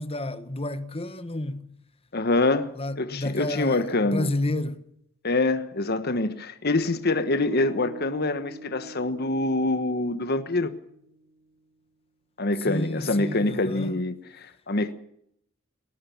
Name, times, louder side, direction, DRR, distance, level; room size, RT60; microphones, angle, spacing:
voice 1, 0.0-1.7 2.7-4.8 12.6-13.9, left 1 dB, 30° left, 1.4 m, -30 dB
voice 2, 2.1-2.7 3.0-4.3 5.2-10.7 12.4-14.9, left 2 dB, 50° left, 1.3 m, -25 dB
sound 1, 7.3-11.5, right 1 dB, 35° right, 3.7 m, -44 dB
19.0 x 19.0 x 7.1 m
head